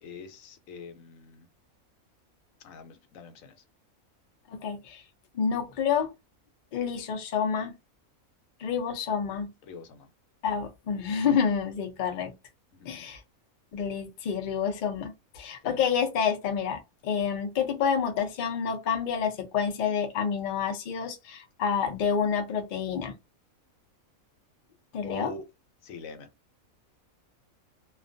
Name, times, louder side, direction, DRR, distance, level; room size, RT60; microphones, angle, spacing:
voice 1, 0.0-1.5 2.6-3.6 9.6-10.1 12.7-13.1 15.6-15.8 25.0-25.4 25.8-26.3, left 3 dB, 75° left, 1.0 m, -44 dB
voice 2, 4.5-5.0 5.3-6.1 6.7-7.7 8.6-9.5 10.4-12.3 12.9-13.2 13.7-23.1 24.9-25.3, left 7 dB, 60° left, 0.5 m, -28 dB
2.4 x 2.3 x 2.5 m
omnidirectional pair, 1.5 m